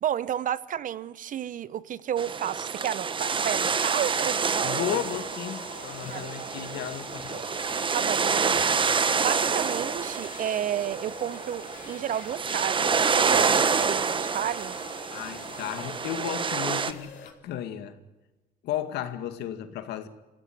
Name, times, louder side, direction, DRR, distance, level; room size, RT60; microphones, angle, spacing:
voice 1, 0.0-5.0 6.1-6.5 7.9-8.8 9.2-14.8, right 10 dB, 50° right, 0.9 m, -32 dB
sound 1, 2.2-16.9, right 5 dB, 30° right, 1.3 m, -27 dB
sound 2, 3.8-17.3, left 6 dB, 50° left, 4.0 m, -46 dB
voice 2, 4.6-7.5 15.1-17.1 17.4-18.0 18.6-20.1, left 10 dB, 80° left, 2.2 m, -34 dB
26.0 x 16.0 x 9.4 m
cardioid pair, 110°, 17 cm